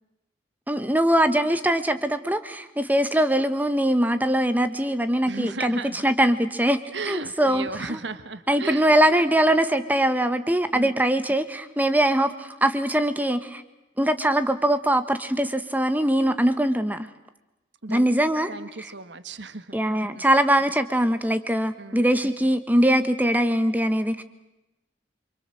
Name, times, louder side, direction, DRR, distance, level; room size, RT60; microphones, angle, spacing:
voice 1, 0.7-8.0 8.5-13.6 14.0-17.1 17.9-18.5 19.7-24.2, right 1 dB, 10° right, 10 dB, 1.4 m, -22 dB
voice 2, 5.2-6.1 6.9-8.9 10.7-10.9 17.8-18.1 18.5-19.8 20.1-20.3 21.8-22.0, right 3 dB, 75° right, 12 dB, 1.7 m, -35 dB
27.5 x 25.5 x 7.7 m, 0.96 s
head